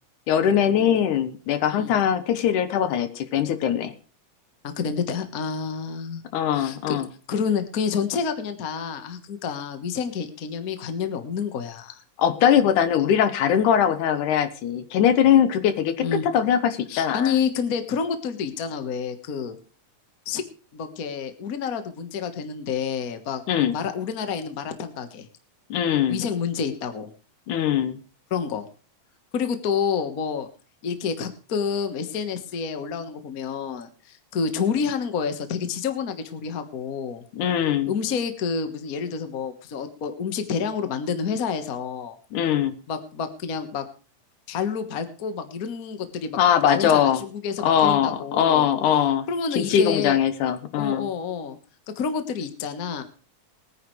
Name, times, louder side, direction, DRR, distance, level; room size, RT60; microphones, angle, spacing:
voice 1, 0.3-3.9 6.3-7.1 12.2-17.3 23.5-23.8 25.7-26.2 27.5-28.0 37.3-37.9 42.3-42.8 46.4-47.2 47.6-49.3 49.5-51.1, left 9 dB, 80° left, 11 dB, 2.5 m, -21 dB
voice 2, 4.6-6.2 6.5-7.0 7.3-12.0 16.0-16.3 16.9-19.6 20.2-20.4 20.7-23.4 23.7-25.3 26.1-27.1 28.3-28.7 29.3-30.5 30.8-37.2 37.8-42.2 42.9-43.8 44.5-46.4 46.7-48.7 49.3-50.2 50.8-51.6 52.0-53.0, left 6 dB, 45° left, 8 dB, 1.1 m, -28 dB
21.0 x 9.9 x 3.2 m, 0.36 s
omnidirectional pair, 3.6 m